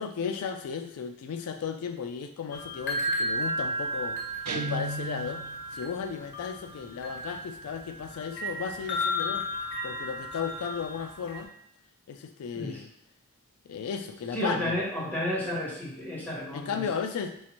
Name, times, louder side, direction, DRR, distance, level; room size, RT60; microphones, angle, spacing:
voice 1, 0.0-5.4 5.7-11.5 12.1-12.9 13.7-14.8 16.5-17.4, left 6 dB, 75° left, 5 dB, 0.3 m, -35 dB
sound 1, 2.5-11.4, equal, 55° left, 0.8 m, -34 dB
Guitar, 4.5-5.6, right 2 dB, 90° right, 0.5 m, -34 dB
voice 2, 14.3-16.8, left 1 dB, 10° left, -6 dB, 1.2 m, -32 dB
5.4 x 2.5 x 2.9 m, 0.73 s
head